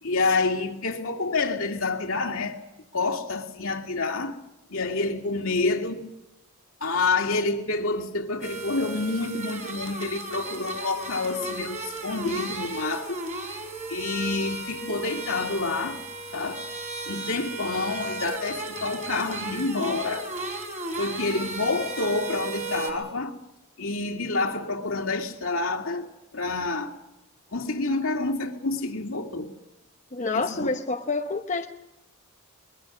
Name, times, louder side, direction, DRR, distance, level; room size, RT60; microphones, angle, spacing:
voice 1, 0.0-2.6 2.9-4.4 4.7-6.0 6.8-13.2 13.9-16.0 16.3-16.6 17.1-20.3 21.0-23.3 23.8-26.1 26.3-27.0 27.5-29.5 30.3-30.7, left 3 dB, 70° left, 2.4 m, -28 dB
sound 1, 8.4-22.9, right 2 dB, 35° right, 4.2 m, -35 dB
voice 2, 30.1-31.7, left 3 dB, 35° left, 0.9 m, -28 dB
23.0 x 22.0 x 6.1 m
head